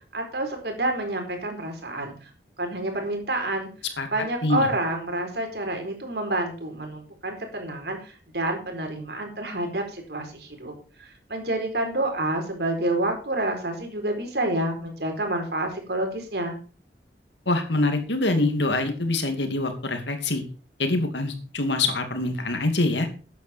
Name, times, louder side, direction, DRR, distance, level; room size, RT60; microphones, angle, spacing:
voice 1, 0.1-2.3 2.6-3.7 4.1-10.7 11.0-16.6, right 1 dB, 70° right, 3 dB, 4.3 m, -28 dB
voice 2, 17.5-20.4 20.8-23.1, left 2 dB, 90° left, 6 dB, 2.5 m, -24 dB
13.5 x 9.4 x 4.4 m, 0.38 s
head